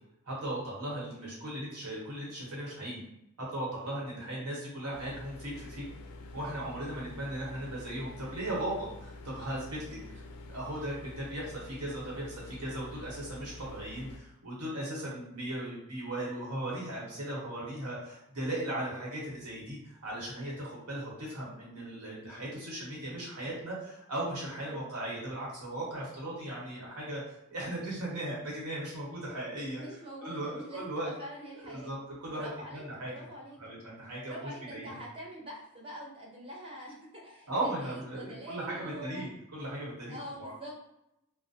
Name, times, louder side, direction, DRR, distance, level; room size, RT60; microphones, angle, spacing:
voice 1, 0.2-3.0 3.4-5.8 6.3-10.2 10.5-29.8 30.2-31.1 31.6-33.1 33.6-35.0 37.5-40.5, right 1 dB, 85° right, -5 dB, 1.1 m, -37 dB
sound 1, 4.9-14.2, left 2 dB, 85° left, 0.3 m, -47 dB
voice 2, 29.7-31.9 32.3-33.6 34.3-39.3 40.1-40.7, equal, 25° right, -3 dB, 0.7 m, -45 dB
2.4 x 2.1 x 2.7 m, 0.86 s
head